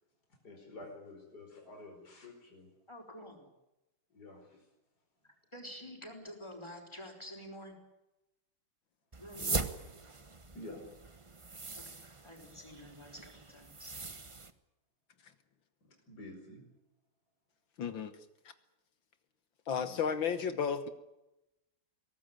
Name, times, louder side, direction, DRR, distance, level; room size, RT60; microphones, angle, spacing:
voice 1, 0.4-2.7 4.1-4.6 9.4-9.7 10.5-10.8 16.1-16.6 19.8-20.0, left 2 dB, 50° left, 2 dB, 5.5 m, -49 dB
voice 2, 2.9-3.5 5.5-7.7 9.2-9.5 11.7-12.0 12.2-14.0, equal, 10° left, 3 dB, 5.3 m, -48 dB
sound 1, 9.1-14.5, right 3 dB, 25° right, 0.7 m, -41 dB
voice 3, 17.8-18.1 19.7-20.9, left 7 dB, 70° left, 10 dB, 2.0 m, -33 dB
22.0 x 18.5 x 9.2 m, 0.94 s
omnidirectional pair, 2.3 m